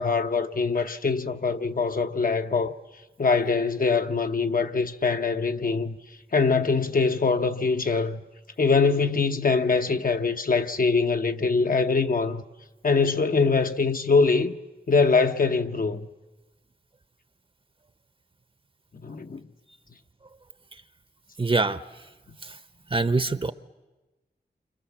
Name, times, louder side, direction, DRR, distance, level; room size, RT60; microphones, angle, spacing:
voice 1, 0.0-2.8 3.2-6.0 6.3-8.2 8.6-12.4 12.8-14.5 14.9-16.1 19.0-19.4, left 4 dB, 55° left, 1.0 m, -23 dB
voice 2, 21.4-21.8 22.4-22.6 22.9-23.5, right 3 dB, 30° right, 0.9 m, -24 dB
29.0 x 25.5 x 7.3 m
wide cardioid pair, 110°, 18 cm